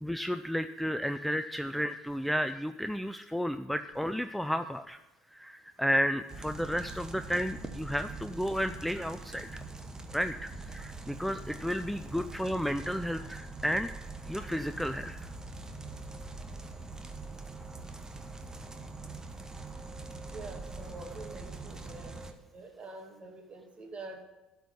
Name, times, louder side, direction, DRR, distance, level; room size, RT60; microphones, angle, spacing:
voice 1, 0.0-5.0 5.3-9.6 10.1-14.0 14.3-15.2, equal, ahead, 9 dB, 0.5 m, -32 dB
sound 1, 6.3-22.3, right 3 dB, 20° right, 1.1 m, -43 dB
voice 2, 20.3-22.1 22.5-24.2, right 3 dB, 35° right, 3 dB, 2.3 m, -46 dB
11.5 x 4.7 x 6.9 m, 1.1 s
hypercardioid pair, 65°, 3 cm